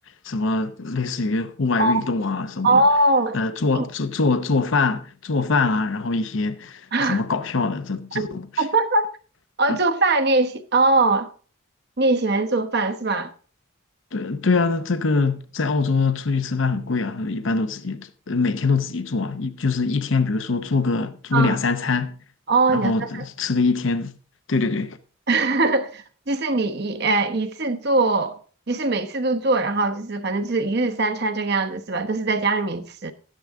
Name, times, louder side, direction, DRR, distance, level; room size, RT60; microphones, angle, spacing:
voice 1, 0.2-2.8 3.3-8.6 9.7-9.8 14.1-22.2 22.7-24.1 24.5-25.0, left 4 dB, 65° left, 0.7 m, -23 dB
voice 2, 2.6-3.4 3.8-3.9 6.9-7.2 8.1-9.1 9.6-11.3 12.0-13.3 21.3-21.6 22.5-23.2 25.3-28.4 28.7-33.1, right 2 dB, 50° right, 1.0 m, -21 dB
13.0 x 10.0 x 3.7 m
head